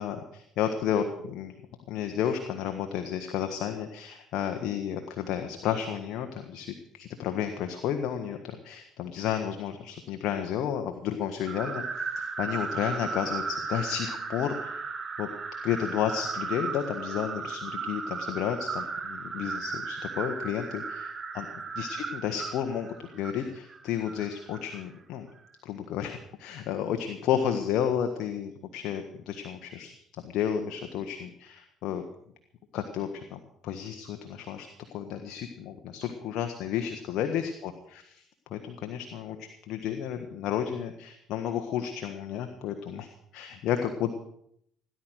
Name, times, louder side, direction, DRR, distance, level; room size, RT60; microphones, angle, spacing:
voice 1, 0.0-1.5 1.9-8.4 8.6-14.8 15.2-15.3 15.6-25.3 25.6-29.9 30.2-32.0 32.7-38.2 38.5-44.1, left 9 dB, 65° left, 5 dB, 1.6 m, -32 dB
sound 1, 11.4-24.8, right 5 dB, 35° right, 2.0 m, -36 dB
17.5 x 11.0 x 6.4 m, 0.70 s
hypercardioid pair, 70°, 0 cm